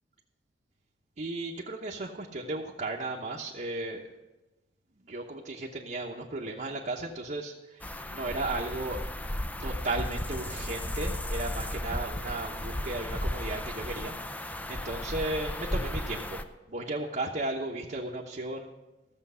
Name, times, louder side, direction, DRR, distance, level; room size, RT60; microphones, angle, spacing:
voice 1, 1.2-4.1 5.0-9.0 9.6-14.1 14.4-16.4 16.7-18.7, right 2 dB, 45° right, -2 dB, 1.0 m, -35 dB
sound 1, 7.8-16.4, left 1 dB, 10° left, 0.5 m, -35 dB
15.0 x 7.2 x 5.6 m, 1.1 s
head